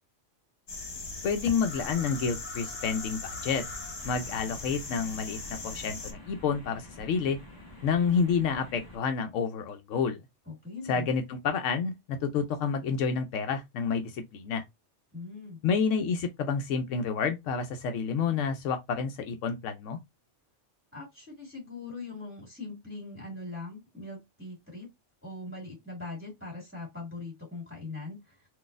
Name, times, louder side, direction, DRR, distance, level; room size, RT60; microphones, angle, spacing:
sound 1, 0.7-6.1, left 3 dB, 55° left, 1.3 m, -39 dB
voice 1, 1.2-3.6 4.0-7.4 7.8-10.2 10.9-14.6 15.6-20.0, left 6 dB, 80° left, 0.9 m, -29 dB
sound 2, 4.0-9.0, left 1 dB, 20° left, 1.0 m, -49 dB
voice 2, 10.4-11.1 15.1-15.6 20.9-24.9 25.2-28.5, left 3 dB, 10° right, 1.8 m, -41 dB
3.9 x 2.5 x 2.4 m
omnidirectional pair, 1.3 m